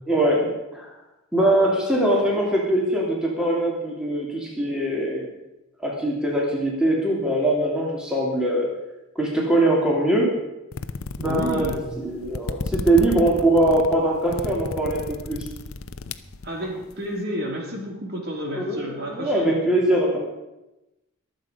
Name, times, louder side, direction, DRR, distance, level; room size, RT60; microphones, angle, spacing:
voice 1, 0.1-0.9 1.3-5.3 5.8-8.7 9.1-10.3 11.2-15.5 18.5-20.2, right 1 dB, 5° right, -3 dB, 2.9 m, -22 dB
sound 1, 10.7-16.9, left 3 dB, 80° left, 0.7 m, -33 dB
voice 2, 11.2-11.8 16.4-19.6, equal, 50° right, 0 dB, 2.7 m, -30 dB
22.5 x 7.9 x 5.1 m, 0.97 s
head